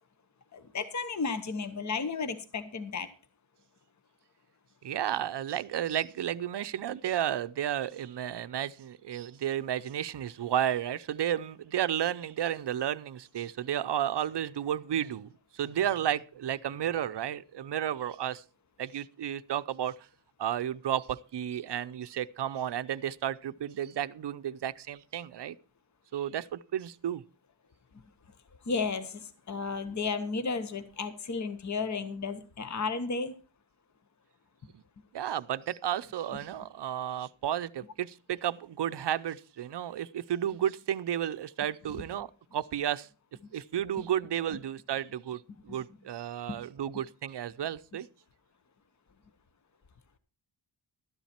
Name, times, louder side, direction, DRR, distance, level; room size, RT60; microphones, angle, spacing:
voice 1, 0.5-3.1 28.6-33.3 41.9-42.0 45.7-45.8 46.5-46.6, left 4 dB, 35° left, 1.0 m, -33 dB
voice 2, 4.8-18.4 18.8-20.0 20.4-25.6 26.1-27.2 34.7-34.8 35.1-43.1 43.5-48.1, right 10 dB, 60° right, 0.6 m, -32 dB
13.0 x 10.5 x 4.3 m
wide cardioid pair, 135°, 47 cm